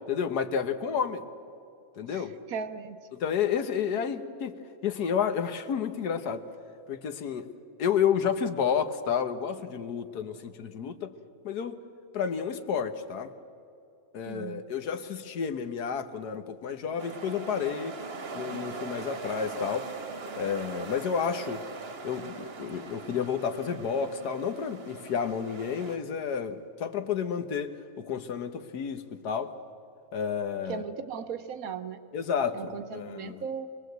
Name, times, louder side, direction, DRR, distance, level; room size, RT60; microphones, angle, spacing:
voice 1, 0.1-1.2 2.0-2.3 3.1-4.6 4.8-6.5 6.9-7.5 7.8-11.1 11.4-11.8 12.1-13.3 14.1-17.9 18.3-19.9 20.4-21.7 22.0-29.5 30.1-30.8 32.1-33.4, left 7 dB, 75° left, 8 dB, 1.6 m, -30 dB
voice 2, 2.1-3.0 14.2-14.6 30.7-32.0 32.5-33.7, right 6 dB, 65° right, 10 dB, 1.2 m, -37 dB
sound 1, 17.0-26.0, right 4 dB, 40° right, 1.2 m, -41 dB
24.0 x 20.0 x 8.0 m, 2.6 s
omnidirectional pair, 1.7 m